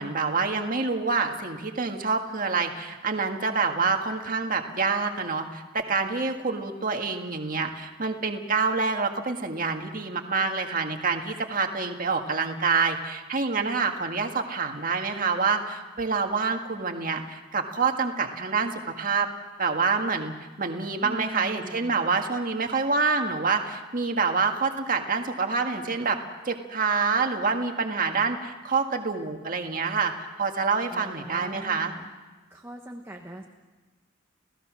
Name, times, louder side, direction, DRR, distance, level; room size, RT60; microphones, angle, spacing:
voice 1, 0.0-19.3 19.6-26.2 26.5-30.1 30.4-31.9, right 4 dB, 45° right, 4 dB, 1.8 m, -27 dB
voice 2, 21.0-22.1 30.9-32.1 32.5-33.4, equal, 15° right, 2 dB, 1.3 m, -41 dB
30.0 x 17.0 x 6.3 m, 1.3 s
head